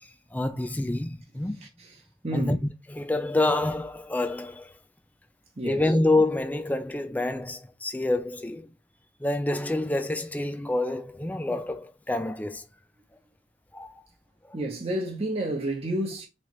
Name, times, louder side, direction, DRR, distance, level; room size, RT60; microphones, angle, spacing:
voice 1, 0.0-1.7 2.3-2.6 2.9-4.7 5.6-8.7 9.2-12.7 13.7-14.0, left 2 dB, 10° left, 0.4 m, -27 dB
voice 2, 1.3-2.0 2.2-2.6 5.6-5.9 14.5-16.3, right 1 dB, 35° right, 0.9 m, -31 dB
3.8 x 3.2 x 3.0 m
head